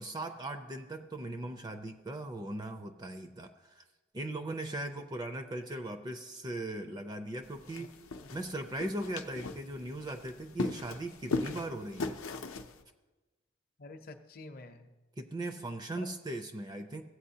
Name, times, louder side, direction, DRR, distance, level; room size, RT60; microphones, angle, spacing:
voice 1, 0.0-3.8 4.1-7.9 8.3-12.2 15.2-17.0, right 1 dB, 20° right, 8 dB, 0.4 m, -39 dB
voice 2, 4.7-5.0 7.8-8.3 13.8-14.9 15.9-16.1, left 2 dB, 45° left, 6 dB, 0.6 m, -50 dB
sound 1, 7.4-12.8, left 3 dB, 85° left, 0.6 m, -39 dB
16.0 x 8.2 x 2.8 m, 1.2 s
head